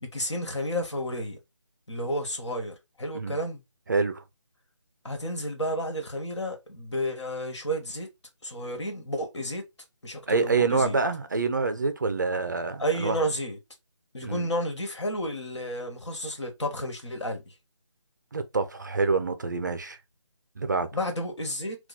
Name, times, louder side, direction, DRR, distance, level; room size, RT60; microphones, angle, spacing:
voice 1, 0.0-1.4 1.9-3.6 5.0-8.1 8.4-9.6 10.0-11.0 12.8-13.6 14.1-17.5 20.9-21.8, equal, 65° left, 1.4 m, -31 dB
voice 2, 3.9-4.2 10.3-13.2 14.2-14.5 18.3-20.0 20.6-20.9, right 4 dB, 40° right, 0.4 m, -26 dB
2.8 x 2.3 x 4.1 m
figure-of-eight pair, 160°, 16 cm